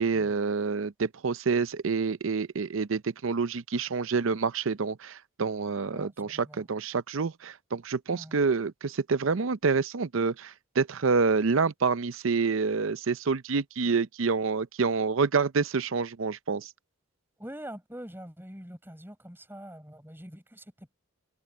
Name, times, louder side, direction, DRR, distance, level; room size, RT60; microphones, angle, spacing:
voice 1, 0.0-16.7, right 4 dB, 75° right, 0.6 m, -27 dB
voice 2, 5.9-6.6 8.1-8.4 17.4-20.9, equal, 10° right, 4.6 m, -44 dB
head